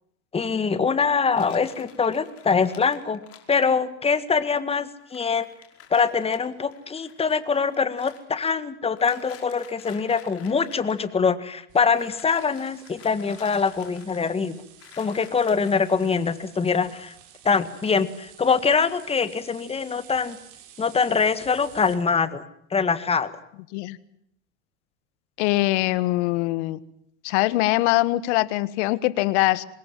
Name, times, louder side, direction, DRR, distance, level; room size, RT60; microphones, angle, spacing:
voice 1, 0.3-3.2 3.5-5.5 5.9-14.6 15.0-17.1 17.4-20.4 20.8-22.4 22.7-23.3, left 5 dB, 15° left, 13 dB, 1.8 m, -23 dB
sound 1, 1.3-3.8 4.7-4.8 5.0-8.2 8.9-11.1 11.9-14.4 14.8-16.1, left 9 dB, 40° left, 5.3 m, -50 dB
sound 2, 11.7-21.9, right 10 dB, 55° right, 6.7 m, -51 dB
voice 2, 25.4-26.8 27.2-29.6, left 18 dB, 75° left, 17 dB, 1.7 m, -22 dB
25.5 x 21.5 x 7.6 m, 0.74 s
supercardioid pair, 135°, 35 cm